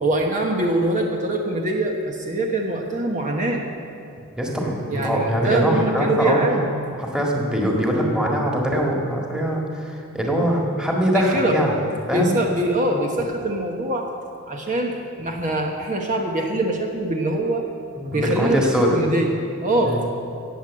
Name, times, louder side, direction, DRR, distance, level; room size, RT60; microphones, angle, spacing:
voice 1, 0.0-3.6 4.9-6.7 11.1-11.6 12.1-14.1 14.5-17.6 18.1-18.7 18.9-20.0, right 1 dB, 35° right, 1 dB, 1.1 m, -23 dB
voice 2, 4.4-6.6 7.0-11.8 12.1-12.4 18.0-19.0 19.8-20.0, equal, 5° right, -2 dB, 1.9 m, -22 dB
18.0 x 7.7 x 7.6 m, 2.6 s
head